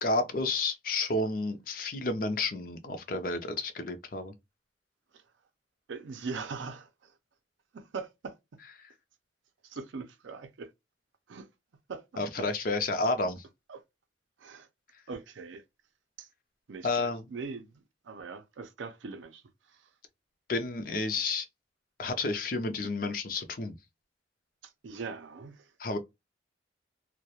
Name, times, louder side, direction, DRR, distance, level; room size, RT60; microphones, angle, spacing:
voice 1, 0.0-4.3 8.8-8.9 12.2-13.4 16.8-17.2 20.5-21.5 22.0-23.8 25.8-26.0, left 3 dB, 50° left, 0.5 m, -31 dB
voice 2, 5.9-7.1 7.7-8.4 9.6-10.7 11.3-11.5 11.9-12.0 12.4-12.5 13.7-13.8 14.4-14.7 15.1-15.6 16.2-16.3 16.7-19.4 19.7-19.9 24.6-25.7, right 4 dB, 80° right, 0.4 m, -41 dB
2.3 x 2.1 x 2.8 m
head